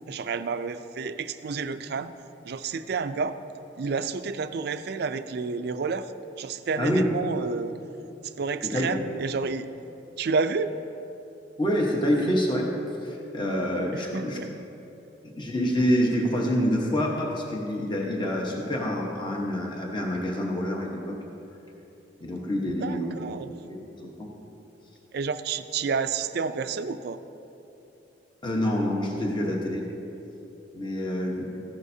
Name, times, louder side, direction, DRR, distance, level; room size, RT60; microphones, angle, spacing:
voice 1, 0.1-2.1 2.4-3.4 3.8-6.1 6.4-7.8 8.2-9.7 10.2-10.7 13.9-14.5 22.7-23.6 25.1-27.2, right 5 dB, 55° right, 11 dB, 0.4 m, -30 dB
voice 2, 6.8-7.1 8.6-9.1 11.6-12.7 13.0-14.4 15.2-21.2 22.2-23.1 23.7-24.3 28.4-29.9 30.7-31.5, equal, 25° left, -1 dB, 1.1 m, -27 dB
14.5 x 11.5 x 2.7 m, 2.9 s
head